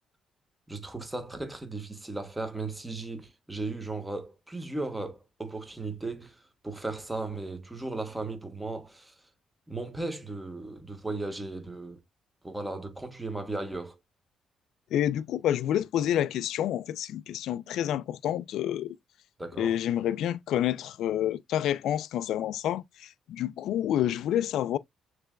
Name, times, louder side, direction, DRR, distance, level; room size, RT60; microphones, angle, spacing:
voice 1, 0.7-9.1 9.7-12.0 12.4-14.0 19.4-19.8, right 2 dB, 10° right, 1.3 m, -36 dB
voice 2, 14.9-19.0 19.6-24.8, left 11 dB, 80° left, 0.4 m, -28 dB
6.7 x 3.3 x 2.3 m
cardioid pair, 90°, 0 cm